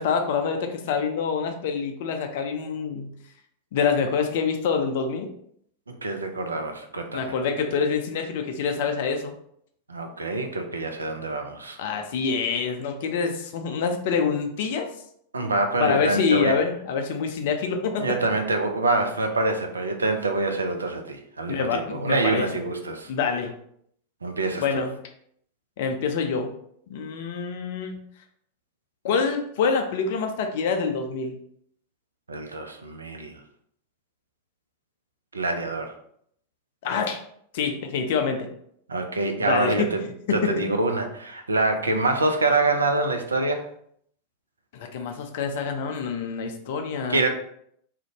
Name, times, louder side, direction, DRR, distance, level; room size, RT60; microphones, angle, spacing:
voice 1, 0.0-3.1 3.7-5.3 7.1-9.3 11.8-14.9 15.8-18.1 21.5-22.5 23.1-23.5 24.6-24.9 25.8-26.5 26.9-28.0 29.0-31.3 36.8-37.2 37.5-38.5 39.4-40.0 40.3-40.6 44.7-47.2, left 5 dB, 55° left, 5 dB, 0.4 m, -26 dB
voice 2, 5.9-7.3 9.9-11.8 15.3-16.6 18.0-23.1 24.2-24.8 32.3-33.4 35.3-35.9 38.9-40.0 40.3-43.6 47.1-47.3, right 2 dB, 75° right, 5 dB, 0.3 m, -26 dB
2.5 x 2.1 x 2.8 m, 0.68 s
figure-of-eight pair, 90°, 0 cm